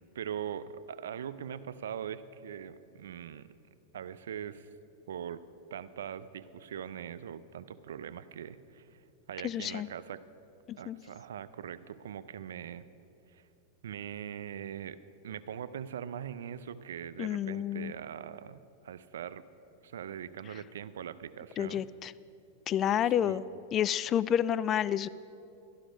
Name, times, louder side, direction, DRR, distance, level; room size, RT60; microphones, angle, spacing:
voice 1, 0.1-3.5 3.9-4.7 5.1-5.4 5.7-10.2 10.8-12.9 13.3-13.5 13.8-15.0 15.2-19.4 19.8-21.8 23.1-23.4, right 9 dB, 75° right, 14 dB, 0.5 m, -41 dB
voice 2, 9.4-9.9 10.7-11.0 17.2-17.9 21.6-22.1 22.7-23.4 23.7-25.1, left 10 dB, 35° left, 18 dB, 0.3 m, -29 dB
13.0 x 11.5 x 5.1 m, 2.7 s
hypercardioid pair, 105°, 0 cm